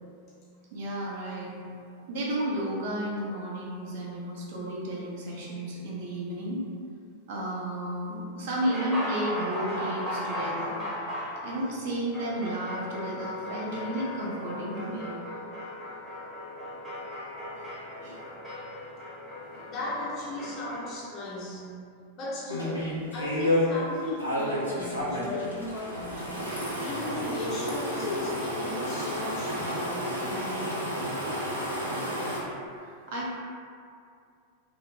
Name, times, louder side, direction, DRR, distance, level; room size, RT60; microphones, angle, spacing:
voice 1, 0.7-1.5 2.1-6.6 7.3-10.8 11.4-15.1 17.6-17.7 17.9-18.2 19.4-19.6 20.3-20.5 30.2-30.7 31.2-32.1 32.8-33.4, right 1 dB, 55° right, -5 dB, 0.5 m, -33 dB
sound 1, 8.6-20.9, left 1 dB, 10° right, 0.7 m, -37 dB
voice 2, 19.6-21.8 22.2-30.2, left 1 dB, 35° left, -6 dB, 0.6 m, -36 dB
sound 2, 22.5-23.6 24.2-32.4, left 1 dB, 90° left, 0.5 m, -31 dB
2.0 x 2.0 x 2.9 m, 2.4 s
figure-of-eight pair, 90°, 0 cm